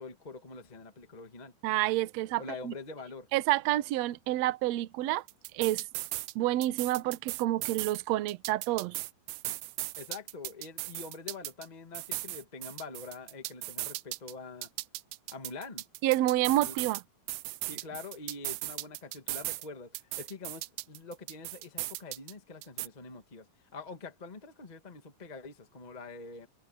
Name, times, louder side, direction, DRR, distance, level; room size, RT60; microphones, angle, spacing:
voice 1, 0.0-1.5 2.4-3.3 10.0-14.7 15.3-15.8 16.4-16.7 17.7-26.5, left 3 dB, 25° left, 0.8 m, -45 dB
voice 2, 1.6-2.7 3.3-5.2 5.5-5.8 6.3-9.0 16.0-17.0, right 15 dB, 70° right, 1.6 m, -28 dB
sound 1, 5.3-6.3 6.6-8.0 8.3-11.7 11.9-14.3 14.6-17.0 17.3-19.7 19.9-22.3 22.6-22.9, right 20 dB, 90° right, 1.7 m, -37 dB
omnidirectional pair, 4.1 m